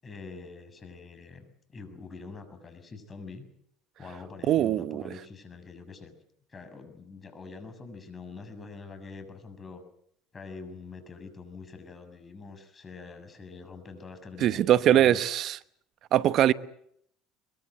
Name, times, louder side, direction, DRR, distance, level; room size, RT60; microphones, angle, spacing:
voice 1, 0.0-1.4 1.7-3.5 4.0-6.1 6.5-9.8 10.3-15.3, left 4 dB, 30° left, 6.9 m, -45 dB
voice 2, 4.5-5.0 14.4-15.6 16.1-16.5, right 12 dB, 55° right, 1.1 m, -22 dB
23.0 x 22.5 x 8.1 m
hypercardioid pair, 75°, 0 cm